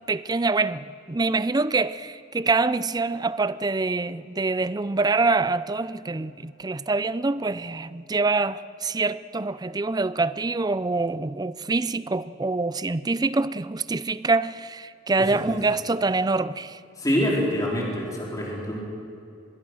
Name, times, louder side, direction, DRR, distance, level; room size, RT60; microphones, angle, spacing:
voice 1, 0.0-16.8, right 3 dB, 20° right, 0.5 m, -25 dB
voice 2, 17.0-18.8, equal, 20° left, 4.4 m, -25 dB
25.5 x 20.5 x 6.3 m
head